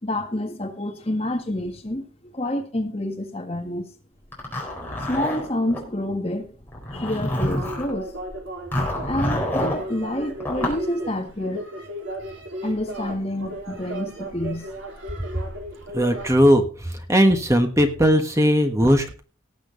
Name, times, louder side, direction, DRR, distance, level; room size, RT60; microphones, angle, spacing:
voice 1, 0.0-2.0 2.3-3.8 5.1-6.5 6.9-8.1 9.0-11.6 12.6-14.7, left 1 dB, 30° left, 1.7 m, -28 dB
Zipper (clothing), 4.3-5.8 6.7-7.9 8.7-9.8 10.4-10.8, left 1 dB, 10° left, 4.2 m, -27 dB
sound 1, 7.4-16.4, right 1 dB, 70° right, 4.1 m, -35 dB
voice 2, 15.9-19.2, equal, 15° right, 1.4 m, -18 dB
18.5 x 7.7 x 3.9 m
head